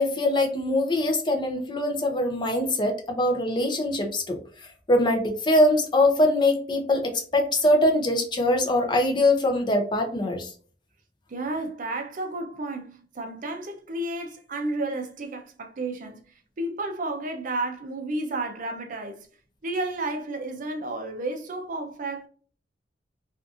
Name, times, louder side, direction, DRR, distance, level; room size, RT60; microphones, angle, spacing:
voice 1, 0.0-4.4 4.9-10.5, left 1 dB, 25° left, 0.5 m, -23 dB
voice 2, 11.3-19.3 19.6-22.3, right 2 dB, 45° right, 0.5 m, -32 dB
2.6 x 2.5 x 2.4 m
head